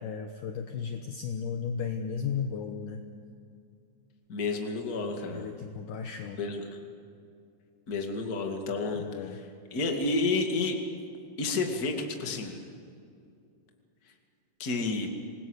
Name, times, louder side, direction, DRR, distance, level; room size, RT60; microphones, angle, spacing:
voice 1, 0.0-3.0 5.3-6.4 9.0-9.4, left 6 dB, 70° left, 6 dB, 2.2 m, -35 dB
voice 2, 4.3-5.5 6.4-6.8 7.9-9.0 9.3-9.4 9.7-10.8 11.4-11.9 12.2-12.6 14.6-15.1, left 3 dB, 30° left, 3 dB, 2.0 m, -30 dB
26.5 x 19.5 x 8.1 m, 2.5 s
omnidirectional pair, 4.8 m